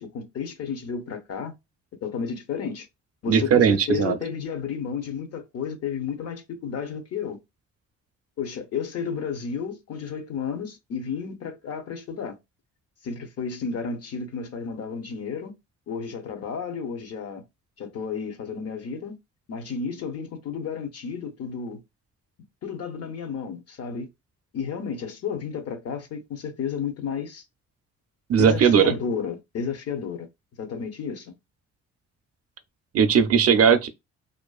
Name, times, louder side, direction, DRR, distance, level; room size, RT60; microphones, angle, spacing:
voice 1, 0.0-1.5 2.0-2.9 3.2-7.4 8.4-12.4 13.0-15.6 15.9-17.4 17.8-19.2 19.5-21.8 22.6-24.1 24.5-27.4 28.3-30.3 30.6-31.3, left 6 dB, 55° left, 0.7 m, -32 dB
voice 2, 3.3-4.2 28.3-28.9 32.9-33.9, right 7 dB, 55° right, 0.5 m, -18 dB
2.5 x 2.3 x 2.3 m
cardioid pair, 90°, 30 cm